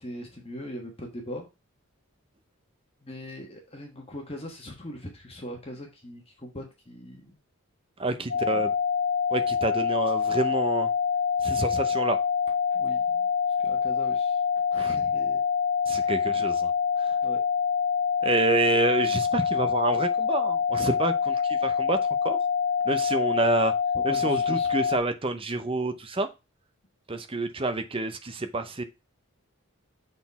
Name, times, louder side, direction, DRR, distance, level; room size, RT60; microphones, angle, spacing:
voice 1, 0.0-1.4 3.0-7.3 8.5-8.6 12.7-13.2 13.6-14.3 14.7-15.4 15.9-16.1 17.2-17.4 24.1-24.7, equal, 25° left, 2 dB, 1.3 m, -40 dB
voice 2, 8.0-8.7 9.3-10.9 11.4-12.2 14.8-14.9 15.9-16.7 17.0-17.1 18.2-22.4 22.9-23.7 24.0-26.3 27.1-28.8, right 2 dB, 25° right, 9 dB, 0.6 m, -28 dB
sound 1, 8.3-25.0, left 6 dB, 65° left, 1.0 m, -26 dB
6.5 x 4.1 x 4.0 m, 0.26 s
head